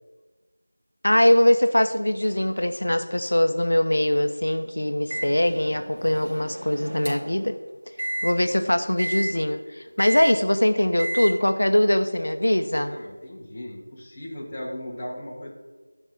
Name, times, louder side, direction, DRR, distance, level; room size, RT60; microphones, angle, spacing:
voice 1, 1.0-7.5 8.2-13.0, left 1 dB, 80° left, 9 dB, 0.9 m, -22 dB
Microwave oven, 5.1-7.4 8.0-8.3 9.0-9.3 10.0-10.3 11.0-11.3, right 1 dB, 70° right, 2.7 m, -31 dB
voice 2, 12.9-15.5, left 1 dB, 20° left, -5 dB, 1.7 m, -37 dB
10.5 x 5.4 x 7.7 m, 1.3 s
figure-of-eight pair, 175°, 0 cm